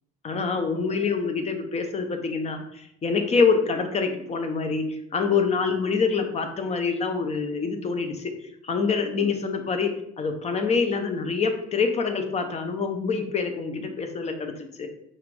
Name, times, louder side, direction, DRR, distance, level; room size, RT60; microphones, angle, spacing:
voice 1, 0.2-8.4 8.6-14.9, left 5 dB, 35° left, 6 dB, 0.8 m, -26 dB
5.5 x 2.6 x 3.4 m, 0.75 s
supercardioid pair, 80°, 19 cm